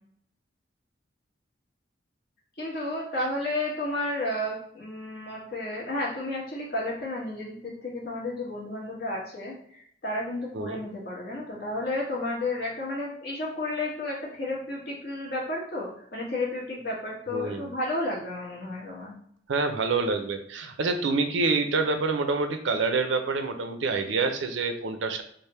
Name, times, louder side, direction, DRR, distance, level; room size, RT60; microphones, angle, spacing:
voice 1, 2.6-9.5 10.0-19.1, left 2 dB, 55° left, -4 dB, 1.2 m, -32 dB
voice 2, 17.3-17.7 19.5-25.2, right 3 dB, 80° right, 7 dB, 0.5 m, -27 dB
3.3 x 2.1 x 4.1 m, 0.65 s
head